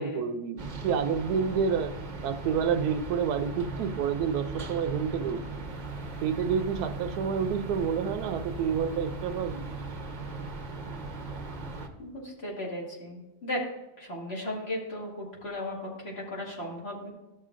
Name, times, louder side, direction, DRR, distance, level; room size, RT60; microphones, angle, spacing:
voice 1, 0.0-2.0 2.2-5.4 6.2-9.6, right 6 dB, 80° right, 9 dB, 1.1 m, -29 dB
sound 1, 0.6-11.9, right 3 dB, 40° right, 0.7 m, -38 dB
voice 2, 12.0-13.6 14.0-17.1, left 1 dB, 40° left, -3 dB, 2.1 m, -36 dB
13.5 x 6.6 x 2.5 m, 1.1 s
omnidirectional pair, 1.7 m